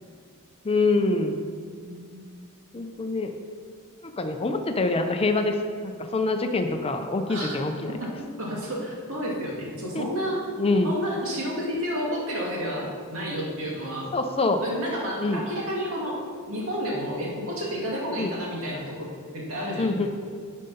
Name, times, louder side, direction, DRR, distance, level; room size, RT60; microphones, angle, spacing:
voice 1, 0.6-1.4 2.7-3.3 4.0-5.6 5.8-7.9 9.9-10.1 10.6-11.0 14.1-14.6 15.2-15.4 18.2-18.3 19.8-20.1, left 3 dB, 25° left, 6 dB, 0.6 m, -25 dB
voice 2, 1.5-2.3 7.3-7.6 8.0-10.4 10.8-14.1 14.6-16.2 16.5-20.0, equal, 65° right, -3 dB, 2.3 m, -31 dB
10.0 x 5.5 x 5.6 m, 2.1 s
head